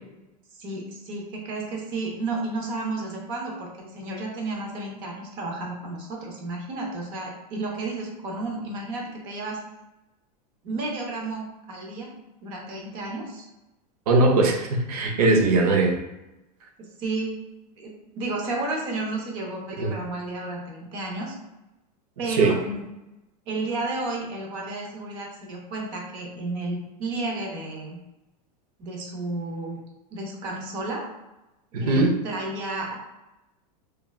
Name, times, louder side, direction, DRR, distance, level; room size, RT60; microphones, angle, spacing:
voice 1, 0.6-9.6 10.6-12.1 12.4-13.4 17.0-21.4 22.2-22.8 23.5-28.0 28.8-29.8 30.1-31.1 31.8-33.0, right 2 dB, 25° right, -1 dB, 0.5 m, -32 dB
voice 2, 14.1-16.0 19.8-19.9 22.3-22.5 31.7-32.2, right 2 dB, 65° right, 2 dB, 0.7 m, -20 dB
3.0 x 2.3 x 2.2 m, 0.98 s
supercardioid pair, 180°, 21 cm